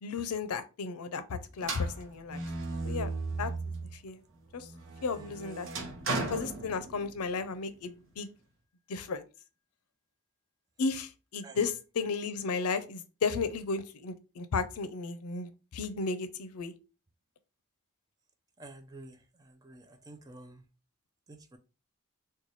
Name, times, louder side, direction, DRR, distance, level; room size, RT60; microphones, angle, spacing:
voice 1, 0.0-2.4 2.8-3.1 3.4-3.5 3.8-4.2 4.5-4.7 5.0-5.7 6.3-8.3 8.9-9.2 10.8-16.7, left 4 dB, 80° left, 11 dB, 0.5 m, -34 dB
sound 1, 1.6-4.0 4.5-7.3, right 3 dB, 60° right, 0.7 m, -36 dB
voice 2, 18.6-19.2 19.5-20.6 21.3-21.6, right 2 dB, 15° right, 7 dB, 0.3 m, -49 dB
3.1 x 2.2 x 4.0 m, 0.31 s
head